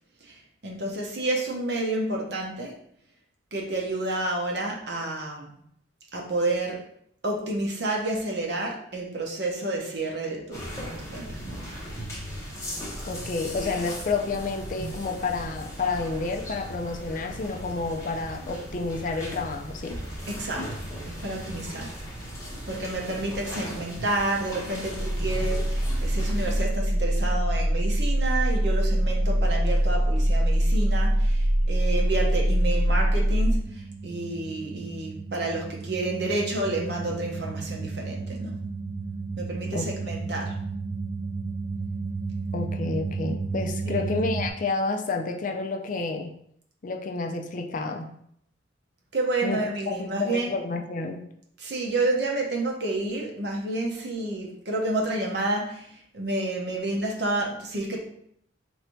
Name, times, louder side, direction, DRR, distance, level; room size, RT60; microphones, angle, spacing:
voice 1, 0.2-2.7 3.5-5.6 6.1-6.8 7.2-11.6 20.3-20.7 21.1-21.9 22.7-38.6 39.4-40.5 43.8-44.1 49.1-50.5 51.6-58.0, right 2 dB, 60° right, -1 dB, 0.9 m, -30 dB
sound 1, 10.5-26.6, equal, 15° left, 1.0 m, -37 dB
voice 2, 13.1-20.0 39.7-39.9 42.5-46.4 46.8-48.1 49.4-51.3, left 3 dB, 45° left, 4 dB, 0.4 m, -30 dB
sound 2, 24.9-44.5, right 1 dB, 45° right, 0.4 m, -26 dB
3.3 x 2.6 x 4.3 m, 0.69 s
head